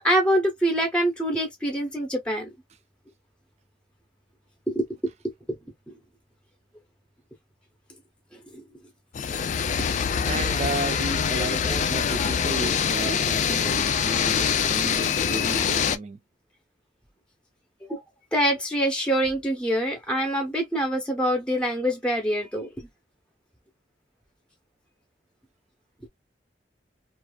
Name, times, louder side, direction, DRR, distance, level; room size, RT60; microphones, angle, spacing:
voice 1, 0.0-2.5 4.7-4.9 5.5-5.6 8.3-8.6 17.8-18.0 18.3-22.9, equal, 5° left, 0.6 m, -25 dB
sound 1, 9.1-16.0, left 7 dB, 45° left, 0.3 m, -24 dB
voice 2, 10.2-16.2, right 3 dB, 40° right, 0.4 m, -33 dB
2.4 x 2.2 x 2.3 m
head